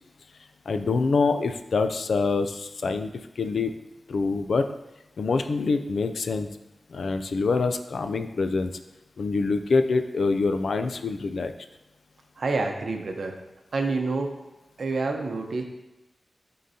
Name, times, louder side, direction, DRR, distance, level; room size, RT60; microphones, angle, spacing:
voice 1, 0.7-3.1 3.4-3.7 4.1-4.7 5.2-6.5 6.9-8.7 9.2-11.5, left 4 dB, 75° left, 8 dB, 0.4 m, -25 dB
voice 2, 12.4-13.4 13.7-14.4 14.8-15.6, right 3 dB, 65° right, 4 dB, 0.8 m, -27 dB
11.0 x 3.9 x 2.8 m, 0.99 s
wide cardioid pair, 135°, 0 cm